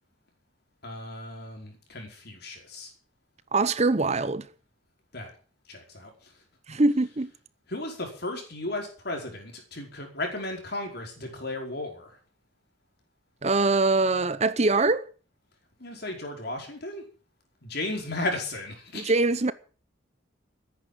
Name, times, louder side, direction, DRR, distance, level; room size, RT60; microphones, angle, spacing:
voice 1, 0.8-2.9 5.1-5.3 5.7-6.1 7.7-12.2 15.8-17.0 17.6-19.1, left 2 dB, 55° left, 5.0 m, -35 dB
voice 2, 3.5-4.5 6.7-7.3 13.4-15.1 18.9-19.5, right 3 dB, 35° right, 0.7 m, -23 dB
14.5 x 10.0 x 7.6 m
head